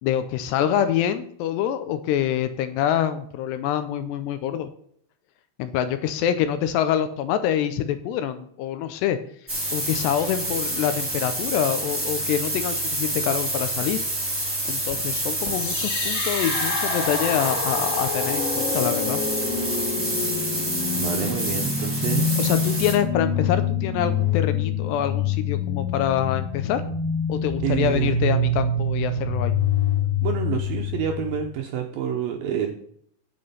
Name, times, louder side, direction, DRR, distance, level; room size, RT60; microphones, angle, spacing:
voice 1, 0.0-4.7 5.6-9.2 9.7-14.0 14.3-19.2 22.4-26.8 27.3-29.6, left 10 dB, 80° left, 10 dB, 2.7 m, -26 dB
sound 1, 9.5-22.9, right 1 dB, 5° right, 2.7 m, -28 dB
sound 2, 15.5-31.5, left 4 dB, 55° left, 3.3 m, -26 dB
voice 2, 20.9-22.4 27.6-28.1 30.2-32.7, right 9 dB, 75° right, 3 dB, 2.3 m, -27 dB
9.6 x 7.7 x 5.6 m, 0.65 s
omnidirectional pair, 5.2 m